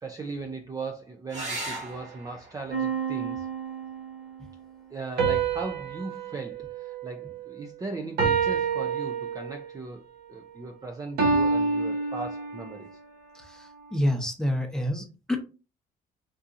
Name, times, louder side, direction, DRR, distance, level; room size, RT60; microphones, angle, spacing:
voice 1, 0.0-3.5 4.9-10.0 10.3-12.9, right 3 dB, 20° right, 0.5 m, -38 dB
sound 1, 1.3-6.3 8.2-8.8 12.3-12.4 12.7-12.8, right 2 dB, 45° right, 1.7 m, -42 dB
sound 2, 2.7-4.2 5.2-7.7 8.2-9.8 11.2-12.9, right 5 dB, 70° right, 1.2 m, -28 dB
voice 2, 13.9-15.4, left 1 dB, 5° left, 0.8 m, -27 dB
3.6 x 2.7 x 2.5 m
cardioid pair, 110°, 17 cm